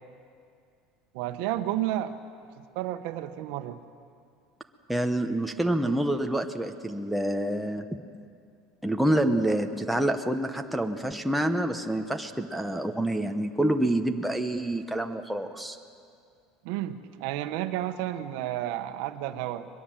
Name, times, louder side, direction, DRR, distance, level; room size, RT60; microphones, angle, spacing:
voice 1, 1.1-2.1 2.7-3.8 16.6-19.7, right 13 dB, 70° right, 9 dB, 1.2 m, -31 dB
voice 2, 4.9-8.0 8.8-15.8, right 1 dB, ahead, 4 dB, 0.9 m, -27 dB
22.0 x 22.0 x 7.5 m, 2.3 s
cardioid pair, 155°, 0 cm